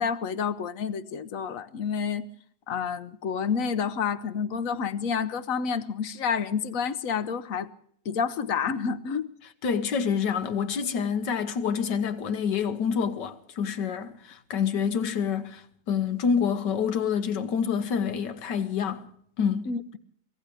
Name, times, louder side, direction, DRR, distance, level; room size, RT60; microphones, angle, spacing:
voice 1, 0.0-2.2 2.7-7.7 8.0-9.3 19.7-20.0, left 6 dB, 60° left, 1.1 m, -29 dB
voice 2, 9.6-19.0 19.4-19.7, left 7 dB, 80° left, 1.7 m, -27 dB
24.5 x 17.0 x 3.4 m
omnidirectional pair, 1.8 m